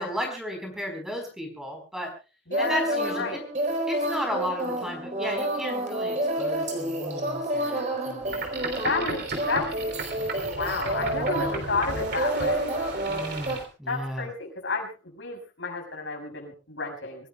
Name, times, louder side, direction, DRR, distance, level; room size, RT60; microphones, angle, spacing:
voice 1, 0.0-2.1 2.6-3.4 3.9-8.3 13.1-14.3, equal, 5° right, 3 dB, 4.3 m, -34 dB
voice 2, 2.5-3.4 8.8-9.7 10.3-12.7 13.9-14.9 15.2-17.3, left 3 dB, 75° left, 1 dB, 6.7 m, -31 dB
sound 1, 2.5-13.6, right 1 dB, 40° right, 4.0 m, -29 dB
Boat Water vehicle, 8.2-13.6, right 3 dB, 55° right, 3.4 m, -35 dB
26.5 x 17.0 x 2.4 m, 0.33 s
head